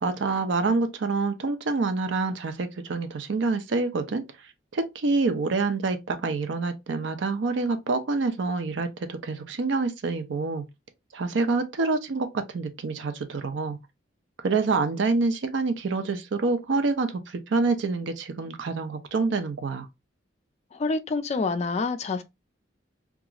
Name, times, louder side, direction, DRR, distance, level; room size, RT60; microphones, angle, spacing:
voice 1, 0.0-4.2 4.7-10.6 11.1-13.8 14.4-19.9, right 3 dB, 75° right, 0.5 m, -27 dB
voice 2, 20.7-22.2, left 3 dB, 35° left, 0.3 m, -27 dB
2.9 x 2.4 x 2.3 m
head